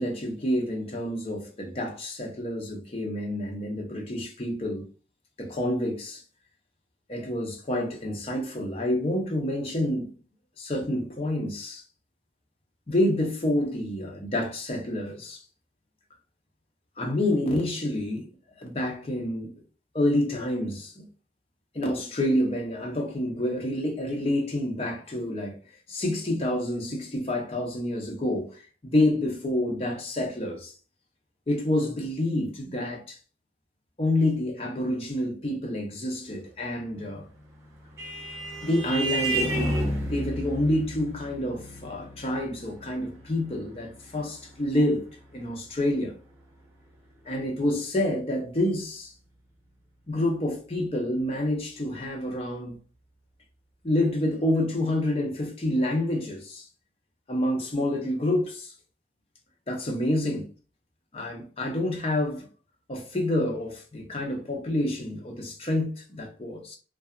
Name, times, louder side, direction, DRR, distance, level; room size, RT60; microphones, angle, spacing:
voice 1, 0.0-4.9 5.4-6.2 7.1-10.1 10.6-11.8 12.9-15.4 17.0-18.3 18.6-19.5 19.9-21.1 21.7-25.6 25.9-30.7 31.5-33.2 34.0-37.3 38.6-45.1 45.3-46.1 47.3-49.1 50.1-52.8 53.8-56.7 57.3-58.7 59.7-60.5 61.1-62.5 62.9-66.8, left 1 dB, 35° left, 0.6 m, -28 dB
Vehicle horn car horn honking, 37.4-46.3, right 1 dB, 15° right, 0.7 m, -33 dB
2.7 x 2.3 x 2.3 m
head